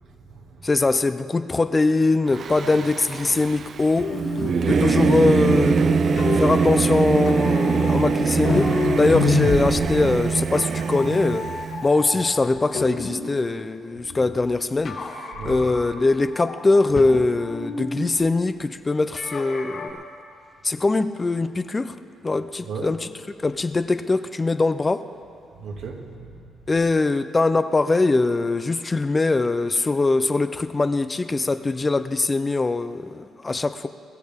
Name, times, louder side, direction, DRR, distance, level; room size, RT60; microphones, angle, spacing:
voice 1, 0.0-0.8 12.1-12.2 14.1-14.2 15.4-15.7 22.6-23.0 25.6-26.9, right 4 dB, 75° right, 0 dB, 2.0 m, -37 dB
voice 2, 0.6-4.2 4.7-11.5 11.8-15.1 15.4-20.0 20.6-21.9 22.2-23.1 23.4-25.0 26.7-33.9, left 3 dB, 25° left, 11 dB, 0.5 m, -22 dB
Singing / Musical instrument, 2.3-11.9, right 6 dB, 50° right, 0.3 m, -24 dB
sound 1, 4.0-13.3 13.7-14.5 14.8-16.1 16.3-18.0 19.1-19.9, left 4 dB, 55° left, 2.2 m, -30 dB
sound 2, 4.7-9.8, right 1 dB, 5° left, 1.1 m, -26 dB
21.5 x 14.0 x 3.6 m, 2.4 s
cardioid pair, 90°, 0 cm